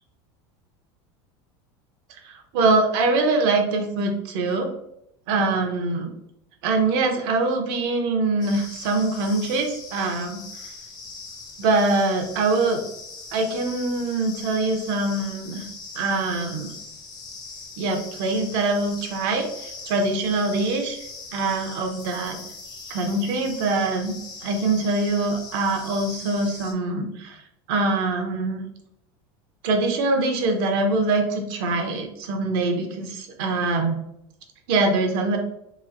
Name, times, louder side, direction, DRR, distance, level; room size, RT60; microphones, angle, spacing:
voice 1, 2.2-4.7 5.3-6.1 6.6-10.4 11.6-12.8 13.3-15.6 16.0-16.7 17.8-21.0 21.3-22.4 22.9-24.1 24.4-27.4 27.7-28.6 29.6-34.0 34.7-35.4, right 3 dB, 70° right, 4 dB, 0.7 m, -23 dB
sound 1, 8.4-26.7, left 4 dB, 30° left, 0.6 m, -41 dB
3.0 x 2.8 x 2.5 m, 0.79 s
supercardioid pair, 130°, 13 cm